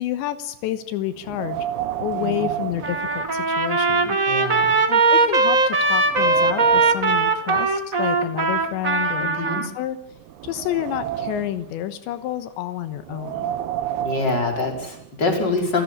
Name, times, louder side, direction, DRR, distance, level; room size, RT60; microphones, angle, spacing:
voice 1, 0.0-1.7 2.0-4.2 4.9-10.0 10.4-13.5, left 12 dB, 85° left, 11 dB, 3.4 m, -29 dB
Wind, 1.2-3.8 4.2-4.3 5.0-5.1 5.5-7.2 8.0-9.5 10.1-11.7 13.0-15.1, right 11 dB, 70° right, 2.8 m, -31 dB
Trumpet, 2.8-9.7, right 3 dB, 30° right, 1.6 m, -20 dB
voice 2, 4.3-4.7 9.2-9.6 14.0-15.8, left 3 dB, 25° left, 3 dB, 5.5 m, -25 dB
29.5 x 15.5 x 9.9 m, 0.78 s
omnidirectional pair, 5.2 m